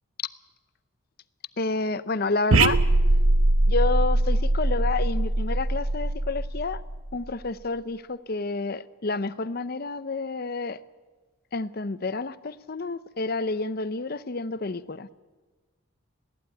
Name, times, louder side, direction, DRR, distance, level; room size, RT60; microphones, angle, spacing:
voice 1, 1.6-2.8 3.7-6.8 7.1-10.8 11.5-15.1, left 3 dB, 45° left, 15 dB, 0.7 m, -29 dB
sound 1, 2.5-7.1, right 2 dB, 80° right, 0.9 m, -22 dB
20.0 x 15.0 x 9.6 m, 1.3 s
head